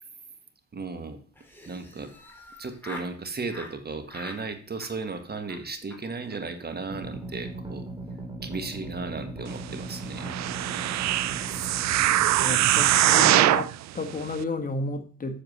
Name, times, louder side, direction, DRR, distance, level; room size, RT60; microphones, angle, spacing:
voice 1, 0.7-1.2 1.7-2.1 2.6-7.8 8.4-10.3 12.0-12.3, right 4 dB, 30° right, 8 dB, 1.4 m, -35 dB
Laughter, 1.3-3.1 3.5-3.7 4.1-4.4 4.7-5.2 5.5-5.6 5.9-6.0 6.3-6.4 6.6-6.8 7.0-7.4, left 1 dB, 5° left, 3.1 m, -44 dB
sound 1, 6.9-13.7, right 2 dB, 15° right, 3.1 m, -38 dB
sound 2, 10.2-13.7 14.3-14.4, right 14 dB, 65° right, 0.5 m, -22 dB
voice 2, 12.4-15.4, left 3 dB, 30° left, 6 dB, 1.4 m, -32 dB
7.8 x 6.8 x 6.5 m, 0.44 s
cardioid pair, 90°, 30 cm